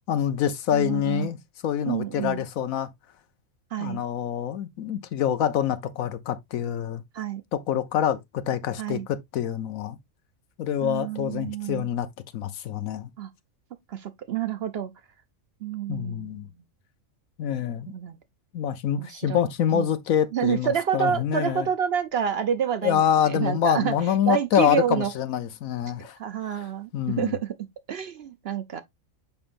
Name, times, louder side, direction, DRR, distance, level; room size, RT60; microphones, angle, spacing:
voice 1, 0.1-1.4 1.6-2.9 3.8-7.0 7.5-10.0 10.6-12.1 12.3-13.1 15.9-16.5 17.4-17.9 18.5-21.7 22.8-26.2 26.5-26.7 26.9-27.3, left 9 dB, 85° left, 1.2 m, -26 dB
voice 2, 0.7-1.3 1.9-2.4 3.7-4.0 7.1-7.4 8.8-9.1 10.8-11.9 13.2-13.3 13.9-14.9 15.6-16.5 17.9-18.2 19.0-19.9 20.3-23.9 24.3-25.1 26.2-28.8, right 8 dB, 60° right, 0.8 m, -28 dB
6.9 x 5.3 x 2.5 m
omnidirectional pair, 1.4 m